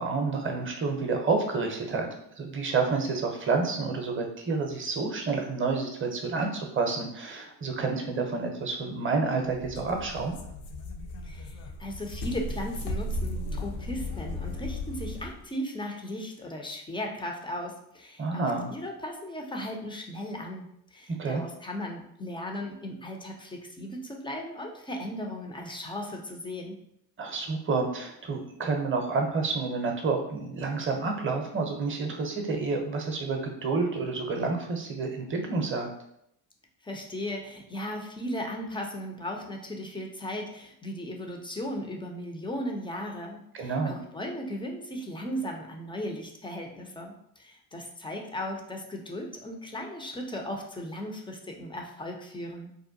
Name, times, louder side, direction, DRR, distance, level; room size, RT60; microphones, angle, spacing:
voice 1, 0.0-2.1 2.4-10.4 18.2-18.7 21.1-21.4 27.2-35.9 43.5-44.0, right 4 dB, 25° right, 3 dB, 0.6 m, -29 dB
sound 1, 9.5-15.4, left 1 dB, 80° left, 0.5 m, -36 dB
voice 2, 11.2-26.8 36.8-52.7, left 1 dB, 10° left, 1 dB, 0.3 m, -37 dB
2.7 x 2.2 x 2.6 m, 0.74 s
hypercardioid pair, 50°, 50 cm